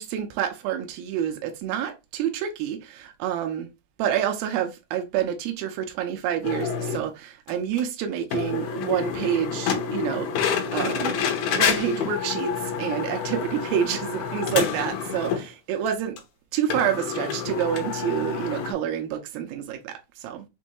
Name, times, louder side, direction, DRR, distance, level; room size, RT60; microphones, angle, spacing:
voice 1, 0.0-3.7 4.0-11.2 11.5-16.2 16.5-20.5, right 9 dB, 80° right, 2.5 m, -28 dB
sound 1, 6.4-7.0 7.5-7.6 7.8-7.9 8.3-15.5 15.9-16.0 16.2-16.3 16.7-18.7, left 7 dB, 75° left, 2.5 m, -28 dB
6.2 x 2.6 x 2.9 m
omnidirectional pair, 4.4 m